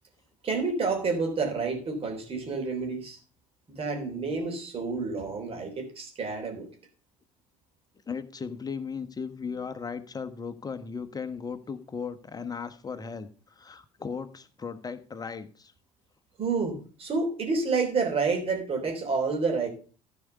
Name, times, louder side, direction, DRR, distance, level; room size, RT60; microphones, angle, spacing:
voice 1, 0.4-3.2 3.7-6.7 16.4-19.7, right 4 dB, 35° right, 3.5 m, -29 dB
voice 2, 8.1-15.7, left 5 dB, 25° left, 1.2 m, -37 dB
14.5 x 4.9 x 5.5 m
figure-of-eight pair, 60°, 17 cm